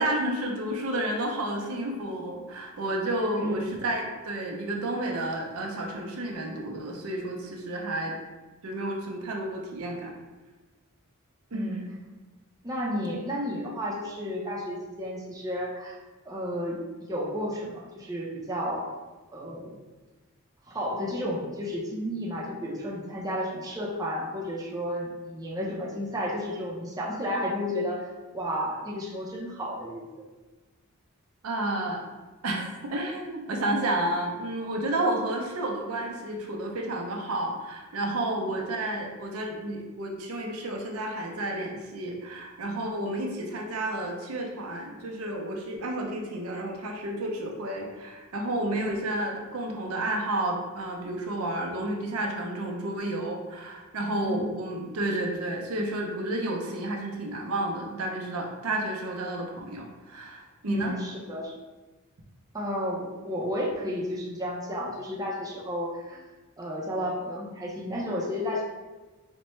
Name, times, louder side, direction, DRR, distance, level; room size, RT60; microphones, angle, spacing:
voice 1, 0.0-8.2 8.6-10.1 11.5-11.8 31.4-32.0 32.4-60.9, right 1 dB, 85° right, 1 dB, 0.6 m, -31 dB
voice 2, 3.3-3.7 11.5-11.8 12.6-16.0 16.3-16.8 17.1-18.9 19.3-19.8 20.7-28.1 28.3-30.0 38.5-38.6 43.0-43.1 48.7-49.0 54.2-54.4 60.6-61.5 62.5-66.2 66.6-68.6, equal, 15° right, -4 dB, 0.5 m, -32 dB
4.2 x 2.2 x 3.0 m, 1.2 s
head